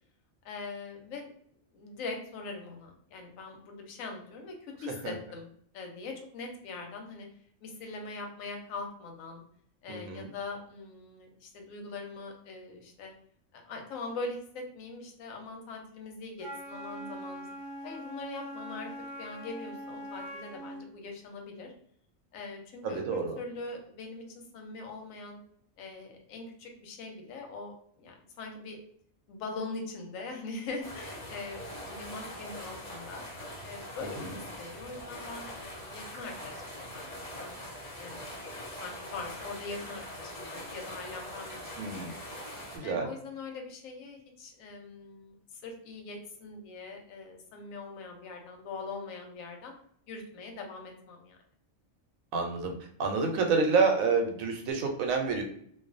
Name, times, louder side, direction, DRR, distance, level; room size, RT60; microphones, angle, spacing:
voice 1, 0.4-1.3 1.7-5.5 5.7-7.3 7.6-9.4 9.8-13.1 13.5-17.5 17.8-18.9 19.2-21.7 22.3-25.4 25.8-28.8 29.3-33.3 33.6-37.5 38.0-38.3 38.8-41.9 42.8-49.7 50.1-51.4, left 3 dB, 85° left, 2 dB, 1.0 m, -42 dB
voice 2, 9.9-10.3 22.8-23.4 34.2-34.4 41.8-42.1 42.7-43.1 52.3-52.7 53.0-55.4, right 4 dB, 85° right, 3 dB, 1.0 m, -28 dB
Wind instrument woodwind instrument, 16.4-20.9, equal, 65° right, 0.3 m, -42 dB
sound 1, 30.8-42.8, left 1 dB, 35° left, 0.9 m, -43 dB
2.3 x 2.3 x 2.5 m, 0.64 s
omnidirectional pair, 1.4 m